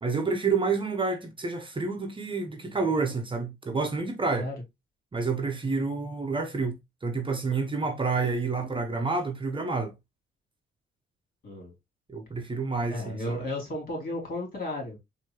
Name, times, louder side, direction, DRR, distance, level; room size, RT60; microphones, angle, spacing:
voice 1, 0.0-4.5 5.1-9.9 12.1-13.4, right 4 dB, 25° right, 0.9 m, -29 dB
voice 2, 11.4-11.7 12.9-15.0, left 1 dB, 50° left, 3.0 m, -34 dB
4.5 x 2.8 x 3.0 m
cardioid pair, 90°, 20 cm